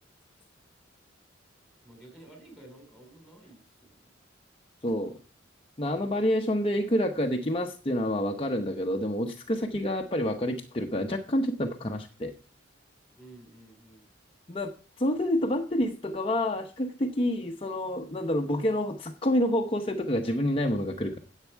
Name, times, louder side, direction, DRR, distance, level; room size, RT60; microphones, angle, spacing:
voice 1, 1.8-4.1 13.2-14.1, right 1 dB, ahead, 2 dB, 4.2 m, -52 dB
voice 2, 4.8-5.2 5.8-12.3 14.5-14.7 15.0-21.2, left 1 dB, 30° left, 3 dB, 0.8 m, -28 dB
10.5 x 8.3 x 4.5 m, 0.37 s
head